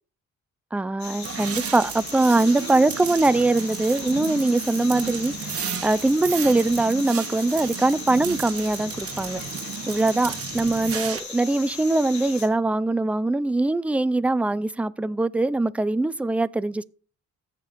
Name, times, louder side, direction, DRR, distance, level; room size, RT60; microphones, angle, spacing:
voice 1, 0.7-9.4 9.9-16.8, right 2 dB, 5° right, 0.4 m, -22 dB
sound 1, 1.0-12.5, left 5 dB, 65° left, 2.6 m, -38 dB
sound 2, 1.2-11.2, right 8 dB, 50° right, 1.2 m, -33 dB
15.5 x 6.8 x 2.5 m
cardioid pair, 90°, 30 cm